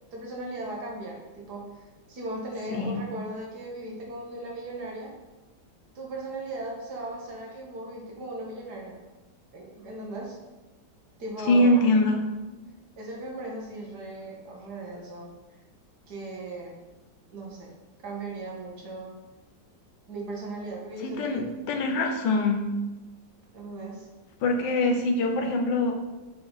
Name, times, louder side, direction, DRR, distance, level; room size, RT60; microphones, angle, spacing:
voice 1, 0.1-5.1 6.0-9.0 9.5-10.4 11.2-11.9 12.6-15.3 16.1-16.8 17.3-17.7 18.0-19.1 20.1-21.6 23.5-24.1, right 2 dB, 65° right, -2 dB, 2.1 m, -37 dB
voice 2, 11.5-12.3 21.0-22.7 24.4-25.9, left 2 dB, 90° left, 3 dB, 1.5 m, -23 dB
6.9 x 6.5 x 4.0 m, 1.1 s
omnidirectional pair, 1.9 m